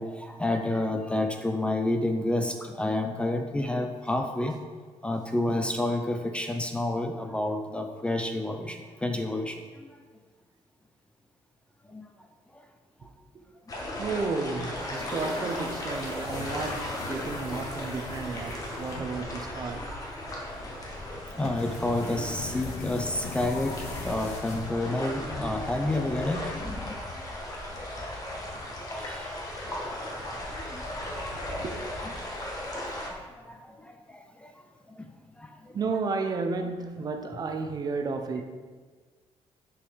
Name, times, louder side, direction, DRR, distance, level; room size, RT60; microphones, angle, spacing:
voice 1, 0.0-4.6 5.0-9.9 11.9-12.0 12.5-12.6 19.7-20.1 21.3-23.8 24.0-27.6 28.9-29.3 29.6-29.8 30.3-32.1 32.4-32.7 33.1-33.2 33.4-34.5 34.9-35.1 35.4-35.8, left 1 dB, 10° left, 5 dB, 0.5 m, -30 dB
sound 1, 13.7-33.1, left 1 dB, 35° left, 1.6 m, -36 dB
voice 2, 14.0-19.9 30.2-30.3 31.3-31.8 35.7-38.4, right 4 dB, 35° right, 5 dB, 0.7 m, -33 dB
sound 2, 14.5-25.1, left 3 dB, 90° left, 1.4 m, -41 dB
10.0 x 4.9 x 5.1 m, 1.5 s
cardioid pair, 155°, 11 cm